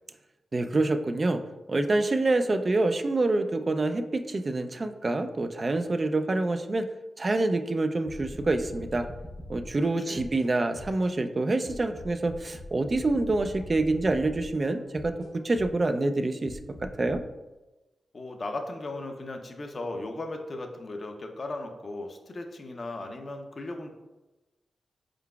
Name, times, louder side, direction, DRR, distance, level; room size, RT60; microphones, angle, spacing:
voice 1, 0.5-1.4 1.7-6.9 7.2-9.1 9.5-15.1 15.4-17.2, right 2 dB, 45° right, 8 dB, 0.4 m, -26 dB
sound 1, 8.0-11.1 11.6-15.9 16.4-17.2, left 1 dB, 70° left, 1.0 m, -43 dB
voice 2, 18.1-23.9, left 2 dB, 50° left, 4 dB, 0.6 m, -37 dB
4.5 x 3.8 x 2.3 m, 1.1 s
supercardioid pair, 45°, 0 cm